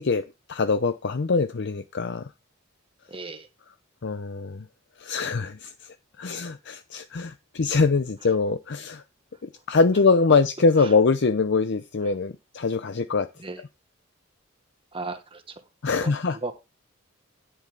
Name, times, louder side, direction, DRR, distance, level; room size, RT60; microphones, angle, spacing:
voice 1, 0.0-2.3 4.0-4.7 5.0-9.0 9.4-13.3 15.8-16.4, left 4 dB, 55° left, 0.6 m, -23 dB
voice 2, 3.1-3.5 6.3-6.4 10.8-10.9 12.0-12.1 13.4-13.6 14.9-15.6 16.0-16.5, right 3 dB, 25° right, 1.4 m, -36 dB
10.0 x 7.8 x 3.4 m
head